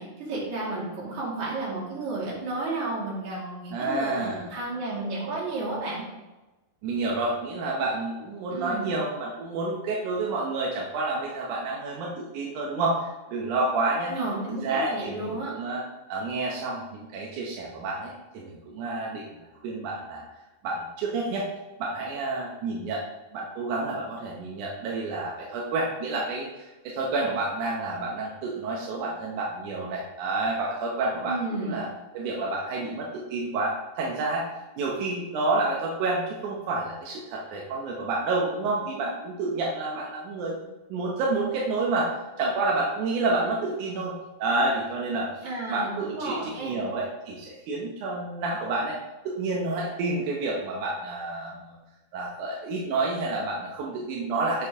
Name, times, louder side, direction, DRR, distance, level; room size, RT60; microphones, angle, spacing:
voice 1, 0.0-6.0 8.5-8.9 14.1-15.5 31.2-31.7 45.4-46.8, right 2 dB, 50° right, -5 dB, 3.4 m, -32 dB
voice 2, 3.7-4.5 6.8-14.1 14.6-15.8 16.1-20.2 20.6-21.5 21.8-23.0 23.3-31.4 31.6-31.9 32.1-34.4 34.8-42.1 42.4-44.1 44.4-49.0 49.3-51.8 52.1-54.7, right 2 dB, 70° right, -3 dB, 2.0 m, -29 dB
7.4 x 6.8 x 3.6 m, 1.1 s
omnidirectional pair, 4.6 m